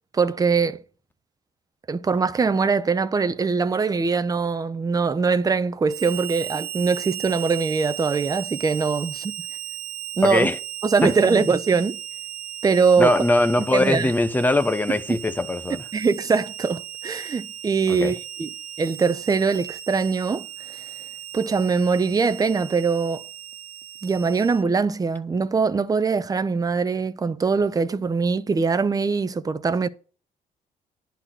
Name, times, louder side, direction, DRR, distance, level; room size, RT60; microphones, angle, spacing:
voice 1, 0.1-0.8 1.9-9.3 10.2-10.5 10.8-12.0 12.6-13.2 13.7-14.1 15.9-18.5 18.8-20.5 21.3-23.2 24.0-29.9, right 5 dB, 25° right, 0.7 m, -22 dB
Harmonica, 5.9-24.6, right 12 dB, 90° right, 1.3 m, -36 dB
voice 2, 10.2-10.6 11.0-11.5 13.0-15.8 17.9-18.2, left 2 dB, 10° left, 0.8 m, -22 dB
10.5 x 4.2 x 7.6 m
cardioid pair, 130°, 16 cm